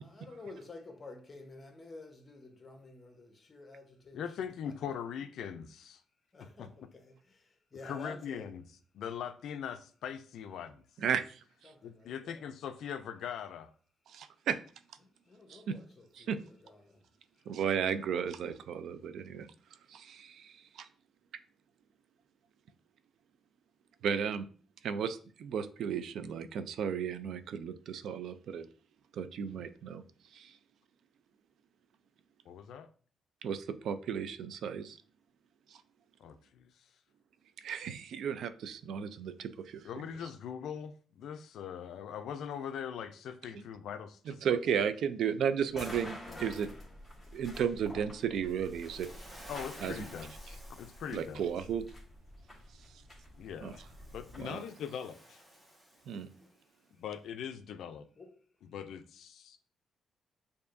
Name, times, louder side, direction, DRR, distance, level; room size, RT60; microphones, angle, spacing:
voice 1, 0.0-4.9 6.3-8.5 11.6-12.4 15.0-17.0 56.4-56.5 58.2-58.3, left 2 dB, 30° left, 0.9 m, -51 dB
voice 2, 4.1-6.0 6.4-6.9 7.8-8.6 8.9-10.8 11.8-13.7 32.5-32.9 36.2-36.7 39.8-44.4 46.3-46.5 49.5-51.4 53.4-53.8 54.1-55.4 57.0-58.1 58.6-59.6, left 8 dB, 75° left, 0.3 m, -41 dB
voice 3, 11.0-11.7 14.1-14.6 15.5-15.8 16.1-16.4 17.5-19.5 19.9-20.9 24.0-24.5 24.8-28.7 29.1-30.6 33.4-35.0 35.7-35.8 37.6-39.9 43.5-43.6 44.3-46.7 47.3-49.1 49.8-49.9 51.1-51.9 52.7-53.0 53.6-53.7 54.4-54.6 56.1-56.3, right 7 dB, 70° right, 0.3 m, -34 dB
sound 1, 45.7-54.4, left 1 dB, 5° left, 1.6 m, -49 dB
Waves surf, 48.5-51.7 53.5-56.6, equal, 20° right, 1.2 m, -54 dB
6.8 x 2.6 x 2.5 m
cardioid pair, 125°, 0 cm